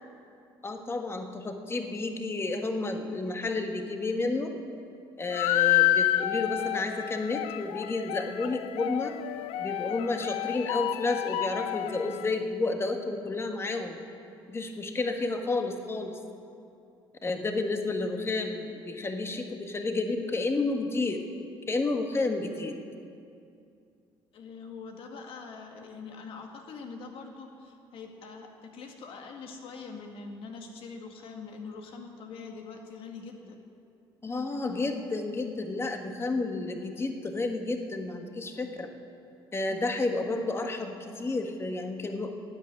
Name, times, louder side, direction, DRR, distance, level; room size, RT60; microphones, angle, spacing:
voice 1, 0.6-4.5 5.2-9.1 9.6-14.0 14.5-16.1 17.2-21.2 21.7-22.8 34.2-38.9 39.5-42.3, left 3 dB, 25° left, 5 dB, 1.5 m, -31 dB
sound 1, 5.3-12.4, left 14 dB, 85° left, 0.5 m, -29 dB
voice 2, 24.3-33.6 39.7-39.9, left 4 dB, 70° left, 3 dB, 1.9 m, -43 dB
12.5 x 8.4 x 9.9 m, 2.5 s
cardioid pair, 90°, 10 cm